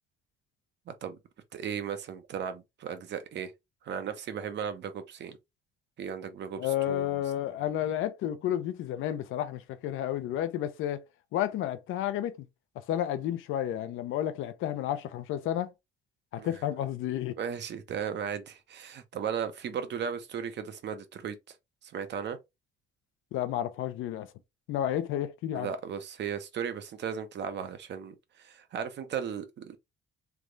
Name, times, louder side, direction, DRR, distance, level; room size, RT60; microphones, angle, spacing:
voice 1, 0.9-1.2 1.5-3.5 3.8-5.4 6.0-7.2 16.4-16.5 17.4-21.4 21.8-22.4 25.5-29.8, right 7 dB, 60° right, 0.9 m, -36 dB
voice 2, 6.6-11.0 11.3-12.4 12.8-15.7 16.3-17.4 23.3-24.3 24.7-25.7, left 11 dB, 85° left, 0.6 m, -31 dB
3.4 x 2.5 x 3.1 m
cardioid pair, 95°, 20 cm